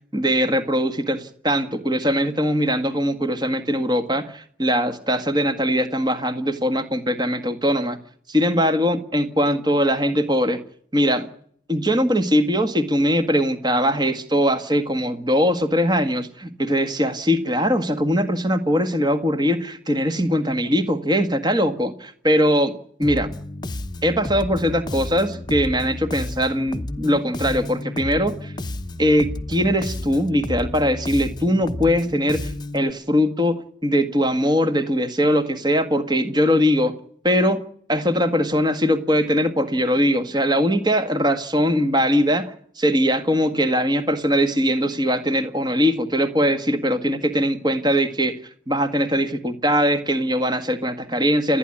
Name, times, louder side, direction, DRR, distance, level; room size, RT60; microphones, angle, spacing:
voice 1, 0.1-8.0 8.3-10.6 10.9-11.3 11.7-23.3 24.0-28.5 29.0-36.9 37.2-37.6 37.9-48.4 48.7-51.6, equal, 20° right, 8 dB, 1.7 m, -21 dB
Bass guitar, 23.0-32.9, left 1 dB, 25° left, 0.9 m, -32 dB
29.5 x 10.5 x 9.9 m, 0.63 s
head